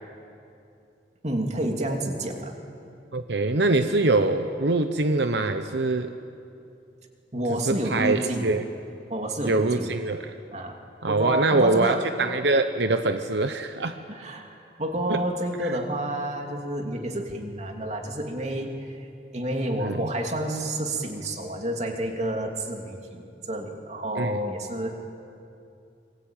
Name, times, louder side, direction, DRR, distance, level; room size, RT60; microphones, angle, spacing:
voice 1, 1.2-2.5 7.3-8.6 9.1-10.0 10.5-10.8 11.1-12.1 14.1-14.5 14.8-19.0 19.3-24.9, right 1 dB, 40° right, 2 dB, 2.9 m, -29 dB
voice 2, 3.1-6.1 7.5-8.6 9.4-10.3 11.0-14.0 15.1-15.2 15.6-15.7 19.8-20.1 24.1-24.4, right 2 dB, 80° right, 8 dB, 1.0 m, -24 dB
27.0 x 22.5 x 9.0 m, 2.6 s
head